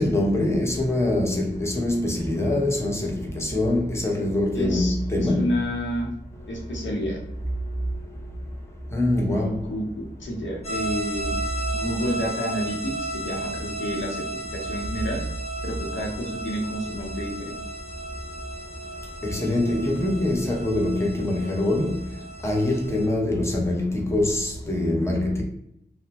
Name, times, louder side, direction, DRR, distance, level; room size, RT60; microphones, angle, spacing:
voice 1, 0.0-5.5 8.9-9.6 19.2-22.0 22.4-25.4, left 1 dB, 15° left, 0 dB, 0.7 m, -24 dB
voice 2, 4.5-6.1 6.5-7.2 9.4-11.3 11.7-15.2 15.6-17.6, equal, 85° left, -1 dB, 0.7 m, -30 dB
sound 1, 10.6-23.1, right 1 dB, 35° left, 1.1 m, -34 dB
2.7 x 2.0 x 2.8 m, 0.80 s
cardioid pair, 50°, 19 cm